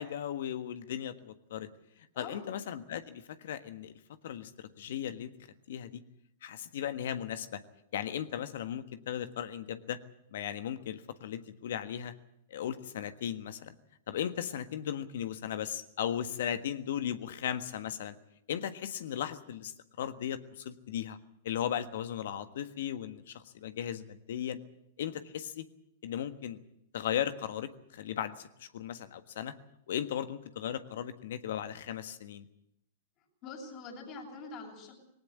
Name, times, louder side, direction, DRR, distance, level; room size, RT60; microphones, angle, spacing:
voice 1, 0.0-1.7 2.2-3.9 4.2-5.3 5.7-6.0 6.4-7.6 7.9-10.0 10.3-12.1 12.5-13.7 14.1-18.1 18.5-19.7 20.0-21.2 21.4-24.6 25.0-25.6 26.0-26.6 26.9-29.5 29.9-32.4, left 10 dB, 65° left, 12 dB, 1.5 m, -36 dB
voice 2, 2.1-2.5 33.4-34.9, left 3 dB, 45° left, -1 dB, 7.9 m, -44 dB
19.5 x 18.5 x 8.6 m, 0.77 s
hypercardioid pair, 105°, 0 cm